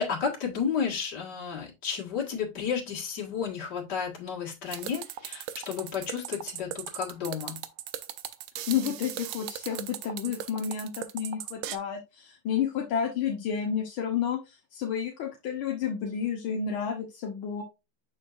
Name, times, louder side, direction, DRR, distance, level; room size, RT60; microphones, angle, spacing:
voice 1, 0.0-7.6, left 6 dB, 50° left, -2 dB, 2.4 m, -32 dB
sound 1, 4.7-11.8, right 12 dB, 80° right, 1.5 m, -38 dB
voice 2, 8.7-17.6, left 8 dB, 75° left, 1 dB, 1.8 m, -31 dB
6.4 x 6.2 x 2.5 m, 0.25 s
omnidirectional pair, 2.4 m